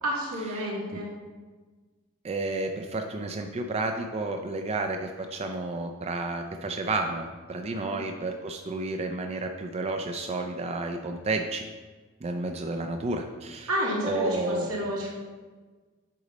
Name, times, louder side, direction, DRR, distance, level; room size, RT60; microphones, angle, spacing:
voice 1, 0.0-1.1 7.7-7.9 13.7-15.1, equal, 80° right, -4 dB, 2.2 m, -30 dB
voice 2, 0.6-1.0 2.2-11.6 12.2-13.7 14.0-14.7, right 2 dB, 30° right, 4 dB, 0.4 m, -31 dB
8.3 x 5.1 x 4.0 m, 1.4 s
head